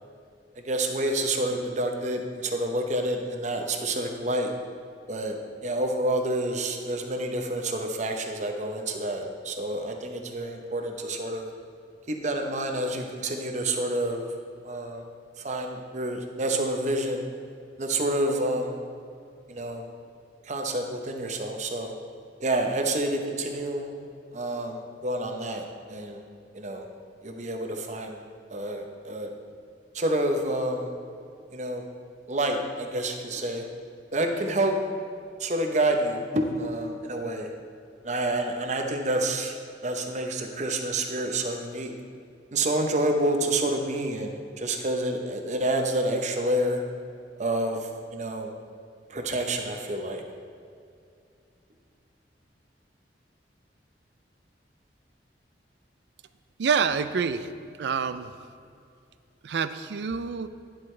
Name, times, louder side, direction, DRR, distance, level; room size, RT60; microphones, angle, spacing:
voice 1, 0.6-4.5 5.1-5.4 5.6-11.5 12.1-14.2 14.6-15.0 15.4-17.2 17.8-18.8 19.5-19.9 20.4-21.9 22.4-23.9 24.3-26.2 26.5-26.8 27.2-28.2 28.5-29.3 29.9-30.9 31.5-31.8 32.3-33.6 34.1-34.8 35.4-37.5 38.0-39.6 39.8-41.9 42.5-46.8 47.4-48.5 49.1-50.2, right 1 dB, 40° right, 4 dB, 0.8 m, -28 dB
voice 2, 56.6-57.5 57.8-58.3 59.4-60.5, right 6 dB, 70° right, 12 dB, 0.4 m, -27 dB
10.5 x 7.7 x 3.3 m, 2.4 s
head